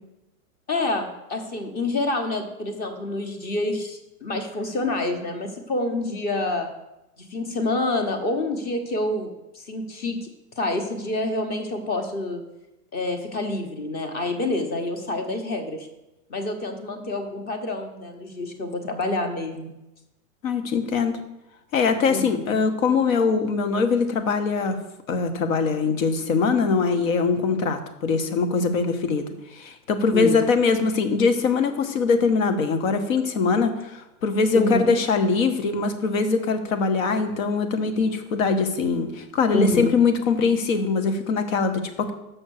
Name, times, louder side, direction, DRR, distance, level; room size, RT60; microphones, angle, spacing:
voice 1, 0.7-6.7 7.2-10.3 10.6-12.4 12.9-15.9 16.3-19.7 22.1-22.5 30.1-30.5 34.5-34.8 39.5-39.9, left 2 dB, 20° left, 6 dB, 1.0 m, -27 dB
voice 2, 20.4-21.2 21.7-24.8 25.1-29.2 29.5-42.1, left 4 dB, 60° left, 8 dB, 1.3 m, -22 dB
6.3 x 5.7 x 6.5 m, 0.95 s
hypercardioid pair, 140°, 45 cm